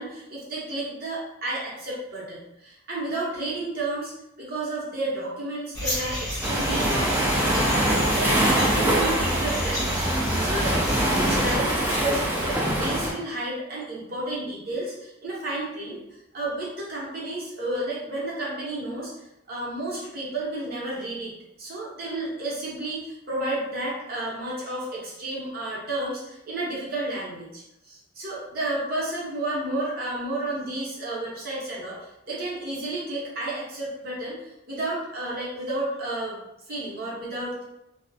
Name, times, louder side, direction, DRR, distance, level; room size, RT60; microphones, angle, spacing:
voice 1, 0.0-4.1 4.4-10.8 11.1-16.0 16.3-19.1 19.5-21.3 21.6-36.4 36.7-37.6, right 2 dB, 55° right, -6 dB, 0.9 m, -32 dB
sound 1, 5.7-11.6, equal, 15° left, 1.0 m, -31 dB
Waves surf, 6.4-13.1, right 1 dB, 10° right, 0.4 m, -24 dB
2.4 x 2.0 x 2.6 m, 0.85 s
head